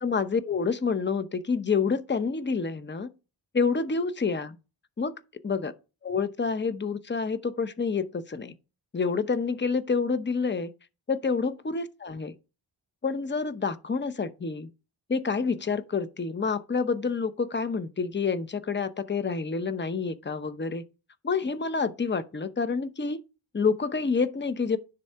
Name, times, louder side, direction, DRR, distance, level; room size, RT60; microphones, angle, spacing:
voice 1, 0.0-3.1 3.5-4.6 5.0-5.1 5.4-5.7 6.0-8.5 8.9-10.7 11.1-12.3 13.0-14.7 15.1-20.8 21.2-23.2 23.5-24.8, left 5 dB, 25° left, 0.8 m, -28 dB
10.0 x 4.1 x 5.5 m
cardioid pair, 70°, 44 cm